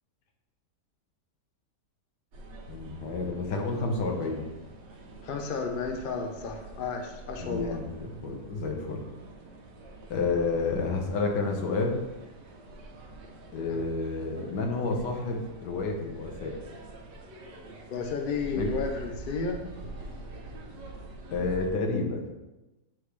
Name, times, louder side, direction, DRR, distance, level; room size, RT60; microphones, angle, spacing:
sound 1, 2.3-21.7, right 2 dB, 85° right, 1.6 m, -45 dB
voice 1, 2.7-4.4 7.4-9.1 10.1-12.0 13.5-16.6 18.6-18.7 21.3-22.2, left 3 dB, 80° left, 2 dB, 1.6 m, -30 dB
voice 2, 5.2-7.8 13.7-13.8 17.9-19.6, left 4 dB, 50° left, 3 dB, 0.6 m, -32 dB
9.0 x 3.7 x 3.3 m, 1.1 s
omnidirectional pair, 1.8 m